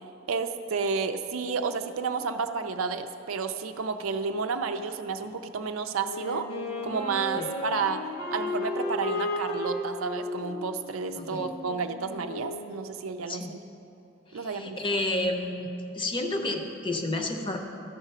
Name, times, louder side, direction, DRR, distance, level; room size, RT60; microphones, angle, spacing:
voice 1, 0.3-6.5 6.8-8.0 8.3-13.6 14.3-14.8, right 5 dB, 90° right, 8 dB, 0.5 m, -31 dB
Wind instrument woodwind instrument, 6.0-12.7, left 2 dB, 75° left, 1.5 m, -34 dB
voice 2, 11.2-11.5 13.3-13.5 14.3-15.7 15.9-17.6, left 2 dB, 25° left, 4 dB, 0.7 m, -30 dB
12.5 x 4.9 x 5.5 m, 2.9 s
head